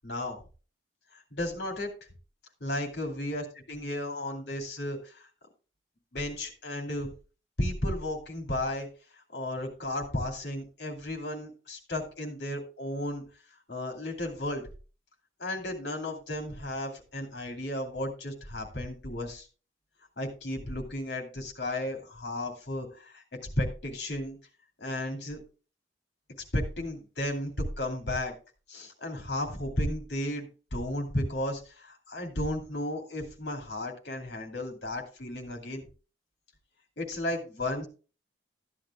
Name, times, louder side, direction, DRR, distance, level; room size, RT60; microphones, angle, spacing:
voice 1, 0.0-0.4 1.1-1.9 2.6-5.3 6.1-7.1 7.6-8.9 9.3-13.2 13.7-14.6 15.4-19.5 20.2-23.2 23.6-24.4 24.8-25.4 26.5-28.3 28.7-35.8 37.0-37.9, left 1 dB, 60° left, 3 dB, 2.6 m, -34 dB
14.0 x 10.0 x 2.3 m, 0.34 s
head